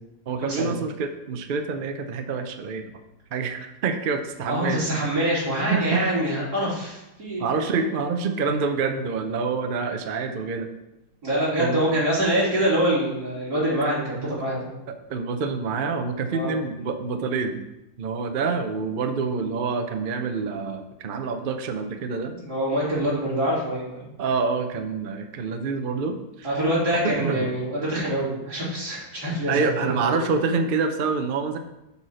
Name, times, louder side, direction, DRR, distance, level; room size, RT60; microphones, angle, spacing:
voice 1, 0.3-2.9 3.3-4.9 5.7-6.1 7.4-10.7 11.6-11.8 14.2-14.3 15.1-17.7 18.0-22.3 24.2-26.5 27.0-27.5 29.5-31.6, right 4 dB, 55° right, 6 dB, 0.6 m, -27 dB
voice 2, 4.5-7.5 11.2-14.7 16.3-16.5 22.3-24.1 26.4-30.2, right 1 dB, 80° right, -7 dB, 3.6 m, -25 dB
7.0 x 4.2 x 6.2 m, 0.92 s
omnidirectional pair, 1.7 m